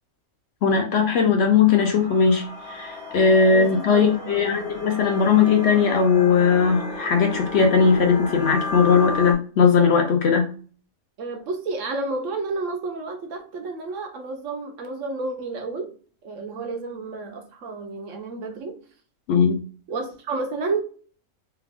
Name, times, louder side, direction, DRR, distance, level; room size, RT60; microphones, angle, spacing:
voice 1, 0.6-10.5 19.3-19.6, left 5 dB, 65° left, 4 dB, 0.7 m, -19 dB
sound 1, 1.7-9.3, left 2 dB, 45° right, 1.3 m, -33 dB
voice 2, 3.5-4.4 11.2-15.9 16.2-18.7 19.9-20.8, right 3 dB, 70° right, 4 dB, 1.1 m, -30 dB
3.3 x 2.4 x 3.4 m, 0.41 s
omnidirectional pair, 1.4 m